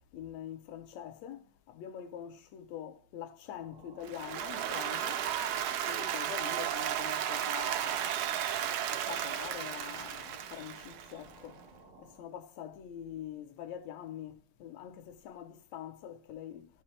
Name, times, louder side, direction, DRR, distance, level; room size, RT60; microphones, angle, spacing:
voice 1, 0.1-5.2 5.7-8.1 8.9-11.6 12.0-16.7, left 10 dB, 75° left, 1.9 m, -45 dB
sound 1, 3.5-12.3, right 3 dB, 45° right, 0.6 m, -55 dB
Applause, 4.1-11.3, right 10 dB, 80° right, 2.1 m, -34 dB
11.5 x 5.9 x 3.2 m
omnidirectional pair, 3.3 m